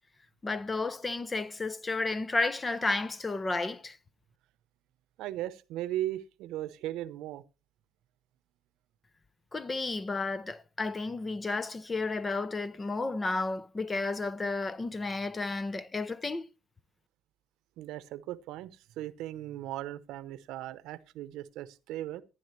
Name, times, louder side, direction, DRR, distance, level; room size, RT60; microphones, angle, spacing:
voice 1, 0.4-4.0 9.5-16.5, left 3 dB, 20° left, 0.7 m, -32 dB
voice 2, 5.2-7.4 17.8-22.2, right 14 dB, 80° right, 0.8 m, -37 dB
15.5 x 10.0 x 3.2 m
cardioid pair, 115°, 0 cm